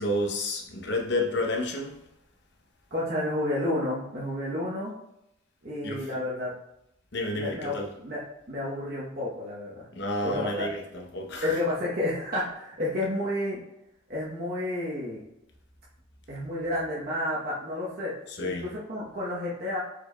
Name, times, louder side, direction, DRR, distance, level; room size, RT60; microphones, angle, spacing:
voice 1, 0.0-2.0 5.8-6.1 7.1-7.9 9.9-11.6 18.3-18.7, left 1 dB, 55° left, 1 dB, 0.8 m, -30 dB
voice 2, 2.9-4.9 5.6-6.5 7.3-8.2 8.5-9.9 10.2-10.7 11.4-13.6 14.1-15.2 16.3-18.1 18.4-19.8, left 1 dB, 45° right, -7 dB, 0.9 m, -30 dB
4.8 x 4.5 x 2.2 m, 0.85 s
head